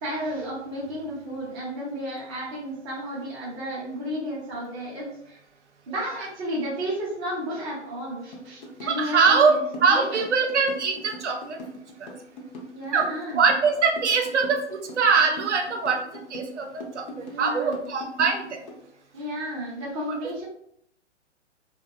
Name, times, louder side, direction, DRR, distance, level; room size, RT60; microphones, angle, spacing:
voice 1, 0.0-5.4 5.9-9.6 9.9-10.2 12.7-13.4 17.2-17.8 19.1-20.5, equal, 15° right, -6 dB, 0.5 m, -32 dB
sound 1, 8.3-18.8, equal, 40° left, 0.5 m, -40 dB
voice 2, 8.9-9.5 9.8-11.6 12.0-12.1 12.9-13.1 13.3-16.7 16.9-18.6, right 5 dB, 70° right, 2 dB, 0.6 m, -22 dB
2.4 x 2.1 x 2.3 m, 0.73 s
figure-of-eight pair, 125°, 36 cm